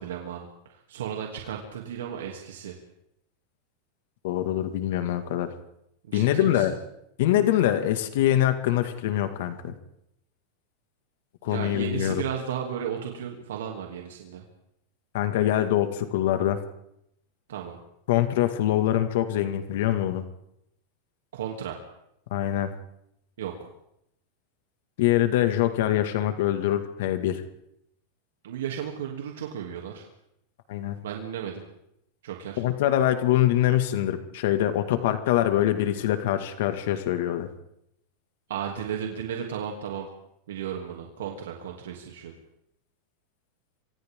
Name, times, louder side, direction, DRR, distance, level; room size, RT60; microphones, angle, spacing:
voice 1, 0.0-2.8 6.1-6.7 11.5-14.4 17.5-17.8 21.3-21.8 23.4-23.5 28.4-30.1 31.0-31.6 32.2-32.6 38.5-40.1 40.5-42.3, right 8 dB, 90° right, 1 dB, 2.9 m, -34 dB
voice 2, 4.2-5.5 6.1-6.7 7.2-9.7 11.4-12.2 15.1-16.6 18.1-20.2 22.3-22.7 25.0-27.4 30.7-31.0 32.6-37.5, left 12 dB, 70° left, 8 dB, 2.0 m, -24 dB
29.0 x 25.0 x 3.8 m, 0.79 s
supercardioid pair, 130°, 0 cm